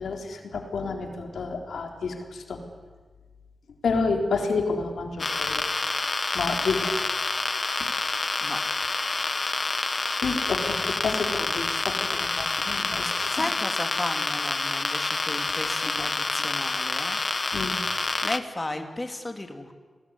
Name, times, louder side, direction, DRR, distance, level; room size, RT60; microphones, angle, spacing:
voice 1, 0.0-2.6 3.8-5.7 6.3-7.2 10.2-13.5 15.6-15.7 16.0-16.1 17.5-17.8, left 4 dB, 90° left, 3 dB, 3.9 m, -30 dB
sound 1, 5.2-18.4, left 3 dB, 35° left, 1.2 m, -28 dB
voice 2, 12.7-17.2 18.2-19.7, left 2 dB, 20° left, 6 dB, 2.6 m, -34 dB
27.5 x 20.5 x 9.8 m, 1.4 s
wide cardioid pair, 90°, 0 cm